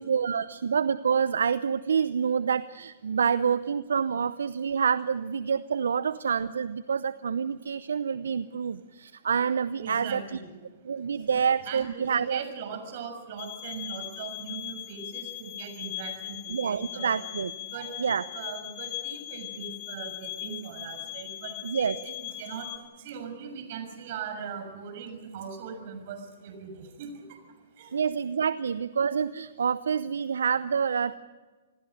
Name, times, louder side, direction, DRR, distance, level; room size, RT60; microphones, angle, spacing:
voice 1, 0.0-10.2 10.8-12.4 16.5-17.5 18.0-18.2 21.6-21.9 27.9-31.2, right 6 dB, 75° right, 15 dB, 0.7 m, -27 dB
voice 2, 9.8-10.5 10.9-17.2 17.6-18.1 18.3-27.4 27.7-28.0, right 6 dB, 50° right, 7 dB, 6.5 m, -40 dB
sound 1, 13.4-22.8, left 15 dB, 50° left, 3.8 m, -39 dB
27.0 x 20.0 x 6.5 m, 1.3 s
hypercardioid pair, 120°, 0 cm